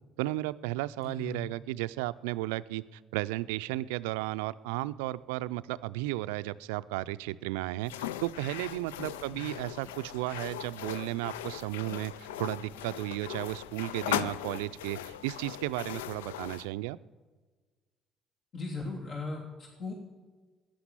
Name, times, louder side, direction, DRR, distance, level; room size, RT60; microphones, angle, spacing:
voice 1, 0.2-17.0, right 17 dB, 75° right, 15 dB, 0.4 m, -34 dB
voice 2, 1.0-1.4 9.3-9.5 18.5-19.9, left 3 dB, 55° left, -2 dB, 3.1 m, -38 dB
sound 1, 7.8-16.7, left 11 dB, 80° left, 0.4 m, -39 dB
14.0 x 10.0 x 9.8 m, 1.4 s
hypercardioid pair, 50°, 0 cm